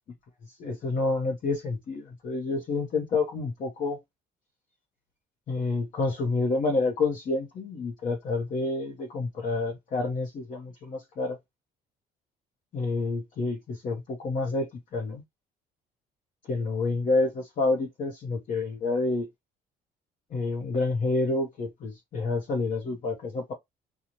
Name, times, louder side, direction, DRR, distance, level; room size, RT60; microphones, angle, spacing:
voice 1, 0.6-4.0 5.5-11.4 12.7-15.2 16.5-19.3 20.3-23.5, left 3 dB, 45° left, 0.9 m, -28 dB
2.6 x 2.3 x 2.9 m
cardioid pair, 110°, 17 cm